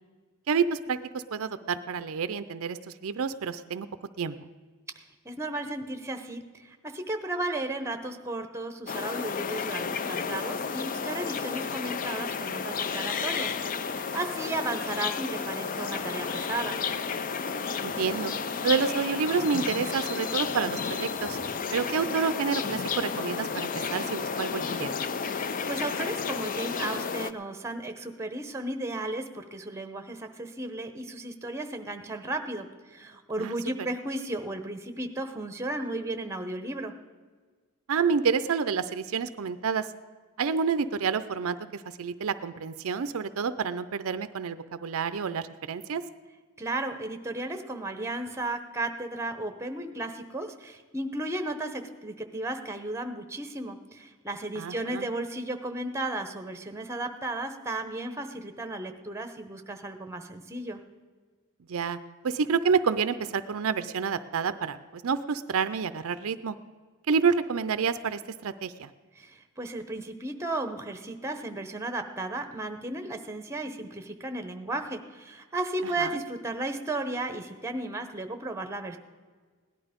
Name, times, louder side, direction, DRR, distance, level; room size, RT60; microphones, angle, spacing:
voice 1, 0.5-3.9 4.2-4.3 17.8-18.3 18.6-21.4 21.7-24.9 33.4-33.6 37.9-39.9 40.4-46.0 54.6-55.0 61.7-62.0 62.2-66.6 67.1-68.9 76.0-76.2, right 6 dB, 65° right, 13 dB, 0.5 m, -29 dB
voice 2, 5.2-16.8 25.2-36.9 46.6-60.8 69.2-79.0, right 2 dB, 10° right, 7 dB, 0.9 m, -34 dB
sound 1, 8.9-27.3, left 5 dB, 35° left, 0.4 m, -32 dB
sound 2, 15.9-21.5, equal, 70° left, 2.2 m, -46 dB
17.0 x 11.0 x 5.1 m, 1.5 s
head